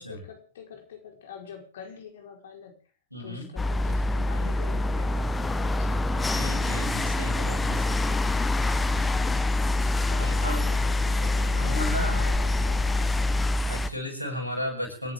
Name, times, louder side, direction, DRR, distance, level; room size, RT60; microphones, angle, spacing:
voice 1, 0.0-2.7 3.2-6.1 9.9-13.3, left 7 dB, 60° left, 3 dB, 4.9 m, -44 dB
voice 2, 3.1-3.5 6.1-8.0 10.2-10.6 11.5-12.2 13.7-15.1, left 1 dB, 90° right, 1 dB, 7.4 m, -34 dB
sound 1, 3.6-13.9, left 2 dB, 10° left, 1.2 m, -25 dB
29.5 x 11.0 x 3.8 m, 0.39 s
figure-of-eight pair, 90°, 0 cm